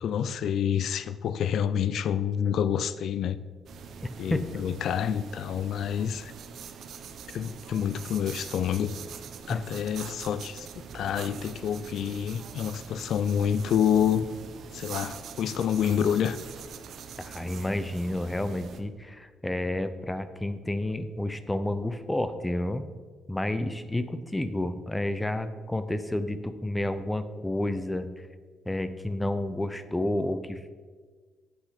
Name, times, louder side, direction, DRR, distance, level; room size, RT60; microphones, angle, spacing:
voice 1, 0.0-3.4 4.2-6.3 7.3-8.9 9.5-14.3 14.7-16.4, left 8 dB, 70° left, 15 dB, 0.3 m, -28 dB
sound 1, 3.7-18.8, right 7 dB, 70° right, 0.7 m, -43 dB
sound 2, 10.9-12.6 13.7-15.4, equal, 40° right, 2.6 m, -51 dB
voice 2, 17.2-22.8 23.3-28.3 28.7-30.7, left 1 dB, 10° left, 11 dB, 0.5 m, -30 dB
7.9 x 6.1 x 5.0 m, 1.5 s
cardioid pair, 90°, 0 cm